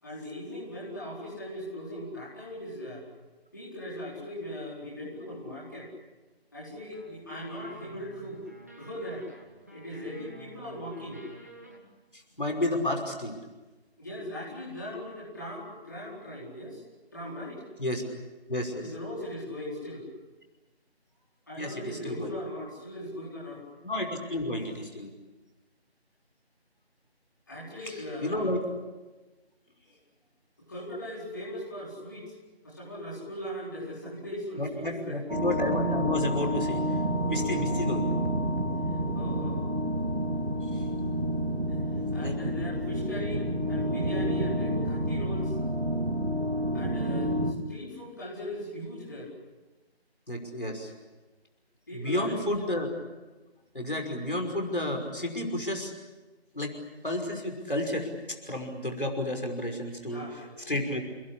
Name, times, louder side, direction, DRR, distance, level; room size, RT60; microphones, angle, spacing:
voice 1, 0.0-3.0 3.5-5.9 6.5-8.4 8.8-9.2 9.7-11.2 14.0-16.8 17.1-17.6 18.8-20.0 21.5-23.6 27.5-28.5 30.7-32.3 32.6-35.2 39.1-39.6 42.1-45.5 46.7-49.3 51.9-52.4 60.0-60.6, equal, 20° left, -8 dB, 4.7 m, -39 dB
sound 1, 6.9-11.8, right 1 dB, 15° right, 1.6 m, -51 dB
voice 2, 12.1-13.4 17.8-18.0 18.5-18.9 21.6-22.3 23.8-25.1 27.9-28.6 34.6-37.0 37.3-38.1 40.6-40.9 42.0-42.4 50.3-50.9 51.9-52.9 53.7-55.9 56.5-56.7 57.0-61.0, left 1 dB, 55° left, 2 dB, 5.6 m, -31 dB
sound 2, 35.3-47.5, equal, 65° right, 3.5 m, -29 dB
29.5 x 21.0 x 8.6 m, 1.2 s
figure-of-eight pair, 170°, 32 cm